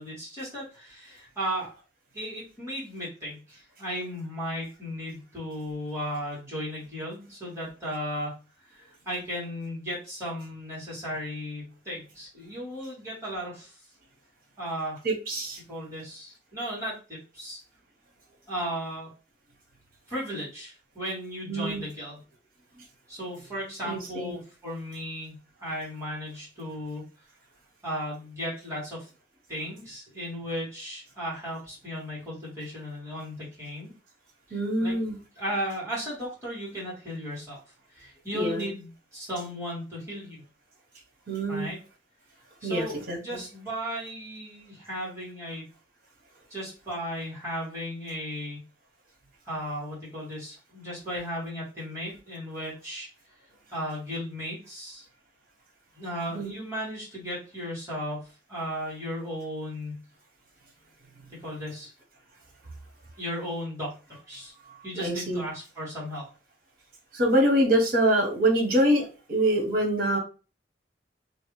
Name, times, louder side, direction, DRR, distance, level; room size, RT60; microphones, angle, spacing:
voice 1, 0.0-1.7 2.1-8.4 8.7-13.8 14.6-15.0 15.7-17.6 18.5-19.1 20.1-22.2 23.1-25.3 25.6-27.1 27.8-29.1 29.5-33.9 34.5-35.0 35.4-37.6 37.9-40.4 41.5-41.8 42.6-45.6 46.5-48.6 49.4-53.1 53.7-55.1 55.9-60.0 61.4-61.9 63.2-64.0 64.3-64.5 64.8-66.3, equal, 15° right, -7 dB, 1.9 m, -35 dB
voice 2, 15.0-15.6 21.5-21.8 23.8-24.4 34.5-35.2 38.3-38.7 41.3-41.7 42.6-43.4 56.3-56.5 64.6-65.4 67.1-70.2, right 1 dB, 55° right, 2 dB, 1.1 m, -25 dB
3.1 x 2.5 x 3.1 m, 0.33 s
head